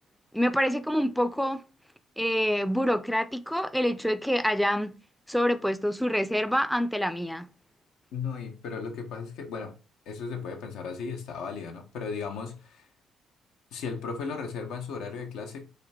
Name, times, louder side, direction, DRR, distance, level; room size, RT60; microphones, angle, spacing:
voice 1, 0.3-1.6 2.2-4.9 5.3-7.5, equal, ahead, 0.4 m, -26 dB
voice 2, 8.1-9.8 10.1-12.9 13.7-15.7, left 5 dB, 90° left, 0.9 m, -36 dB
5.1 x 2.5 x 4.2 m
cardioid pair, 90°, 0 cm